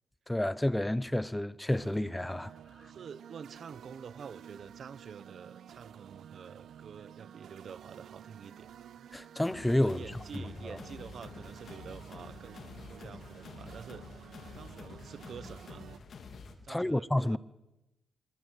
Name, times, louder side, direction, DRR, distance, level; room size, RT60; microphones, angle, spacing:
voice 1, 0.3-2.5 9.1-10.0 10.3-10.8 16.7-17.4, left 1 dB, 10° left, 0.9 m, -30 dB
sound 1, 1.7-16.0, right 9 dB, 80° right, 1.0 m, -52 dB
voice 2, 2.8-8.7 9.8-14.2 14.5-15.8 16.6-17.4, right 6 dB, 65° right, 1.3 m, -48 dB
sound 2, 9.4-16.5, left 4 dB, 60° left, 4.0 m, -48 dB
26.5 x 23.5 x 8.4 m
cardioid pair, 85°, 0 cm